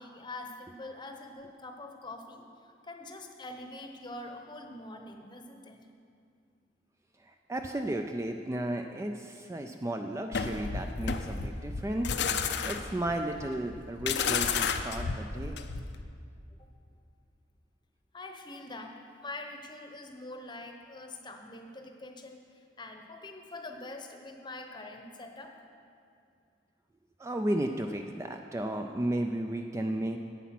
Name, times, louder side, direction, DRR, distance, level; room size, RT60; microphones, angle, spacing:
voice 1, 0.0-2.5 2.8-5.8 18.1-18.9 19.2-25.5, left 2 dB, 25° left, 4 dB, 0.8 m, -44 dB
voice 2, 7.2-12.2 12.6-15.6 27.2-30.2, right 1 dB, 15° right, 4 dB, 0.3 m, -34 dB
sound 1, 10.3-16.0, left 6 dB, 60° left, 0.5 m, -32 dB
10.0 x 8.2 x 5.9 m, 2.4 s
head